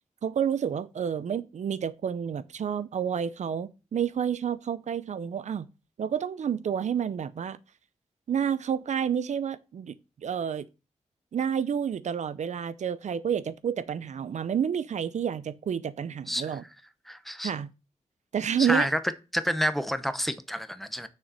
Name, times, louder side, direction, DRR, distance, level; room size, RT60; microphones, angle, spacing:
voice 1, 0.2-5.7 6.0-7.6 8.3-9.9 10.2-10.7 11.3-16.6 17.4-17.7 18.3-18.9, right 8 dB, 75° right, 0.6 m, -29 dB
voice 2, 16.3-16.6 17.1-17.5 18.6-19.0 19.3-21.1, equal, ahead, 0.8 m, -29 dB
6.8 x 6.3 x 7.5 m
wide cardioid pair, 140°, 12 cm